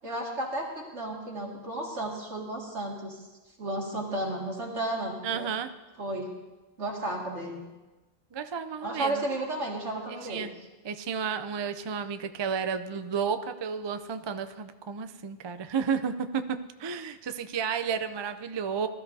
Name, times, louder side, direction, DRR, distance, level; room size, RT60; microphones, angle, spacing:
voice 1, 0.0-3.3 3.6-5.5 6.0-6.3 6.8-7.6 8.8-10.5, right 1 dB, 85° right, -2 dB, 2.5 m, -33 dB
voice 2, 5.2-5.7 8.3-9.3 10.1-10.5 10.8-18.9, right 6 dB, 40° right, 9 dB, 0.4 m, -32 dB
20.0 x 13.0 x 2.7 m, 1.2 s
omnidirectional pair, 1.2 m